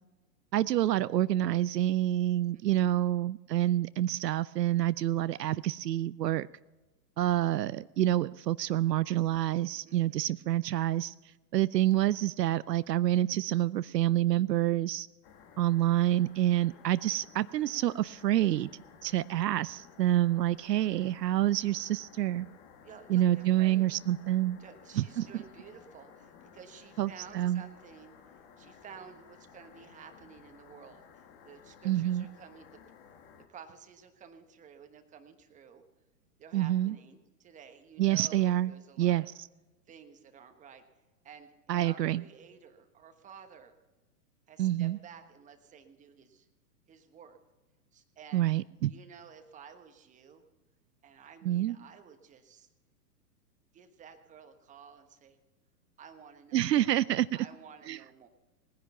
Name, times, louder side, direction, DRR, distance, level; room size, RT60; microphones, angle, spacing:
voice 1, 0.5-6.5 7.2-11.1 11.5-15.1 15.6-18.7 19.0-22.5 23.1-24.6 25.0-25.3 27.0-27.6 31.8-32.3 36.5-36.9 38.0-38.7 39.0-39.5 41.7-42.2 44.6-45.0 48.3-48.9 51.4-51.8 56.5-57.3 57.9-58.0, right 13 dB, 75° right, 18 dB, 0.5 m, -27 dB
voice 2, 2.5-3.1 7.2-7.3 9.8-10.2 22.8-23.9 24.6-28.2 28.6-32.7 33.5-35.8 36.4-39.3 39.9-40.8 41.2-43.8 44.5-46.5 46.9-47.4 47.9-48.5 48.9-50.4 51.0-52.7 53.7-55.4 56.0-57.0 57.3-58.3, right 7 dB, 15° right, 7 dB, 1.2 m, -52 dB
sound 1, 15.2-33.5, left 7 dB, 40° left, 1.7 m, -56 dB
19.5 x 10.5 x 5.7 m, 1.1 s
hypercardioid pair, 120°, 49 cm